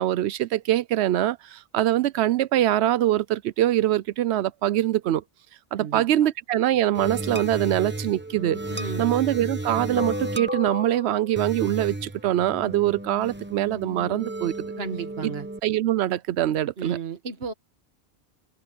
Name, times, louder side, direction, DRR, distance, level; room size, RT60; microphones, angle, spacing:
voice 1, 0.0-5.2 5.7-8.6 9.0-14.7 15.2-15.3 15.6-17.0, right 13 dB, 85° right, 0.8 m, -23 dB
voice 2, 5.8-6.3 8.7-9.1 14.7-15.5 16.8-17.5, right 6 dB, 70° right, 1.7 m, -34 dB
sound 1, 6.9-15.6, right 1 dB, 10° right, 1.0 m, -33 dB
omnidirectional pair, 1.1 m